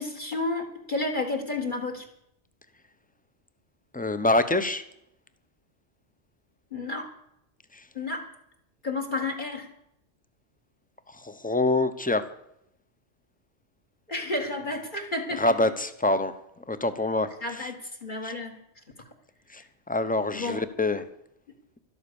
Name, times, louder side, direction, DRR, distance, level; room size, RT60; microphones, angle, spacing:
voice 1, 0.0-2.1 6.7-7.1 7.9-8.3 8.8-9.7 14.1-15.7 17.4-18.6 19.0-19.1 20.3-20.6, left 2 dB, 40° left, 5 dB, 2.0 m, -31 dB
voice 2, 3.9-4.8 7.7-7.8 11.1-12.3 15.4-16.3 16.7-17.3 17.6-17.7 18.2-18.3 19.5-21.0, left 2 dB, 10° left, 11 dB, 0.8 m, -26 dB
12.5 x 12.5 x 7.0 m, 0.77 s
omnidirectional pair, 1.2 m